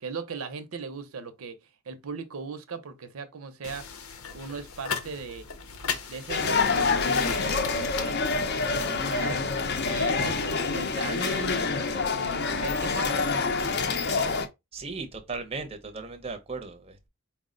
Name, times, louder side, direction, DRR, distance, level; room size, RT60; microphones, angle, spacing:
voice 1, 0.0-4.0 4.3-5.5 6.1-9.4 9.8-13.3, right 4 dB, 80° right, 0.6 m, -39 dB
sound 1, 3.6-8.9, left 6 dB, 85° left, 0.7 m, -37 dB
sound 2, 6.3-14.5, left 4 dB, 50° left, 0.5 m, -27 dB
voice 2, 14.7-17.1, right 4 dB, 25° right, 0.5 m, -37 dB
4.6 x 2.1 x 3.7 m
head